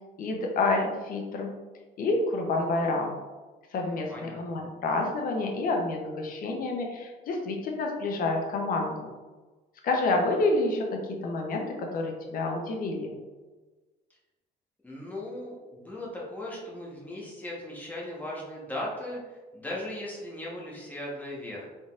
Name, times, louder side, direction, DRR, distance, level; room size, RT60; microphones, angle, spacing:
voice 1, 0.2-1.5 2.0-3.1 3.7-9.1 9.8-10.9 11.2-13.1, left 2 dB, 55° left, 2 dB, 0.8 m, -28 dB
voice 2, 3.8-4.4 14.8-21.7, left 1 dB, 10° left, -4 dB, 1.2 m, -38 dB
3.9 x 3.8 x 2.5 m, 1.3 s
cardioid pair, 110°, 17 cm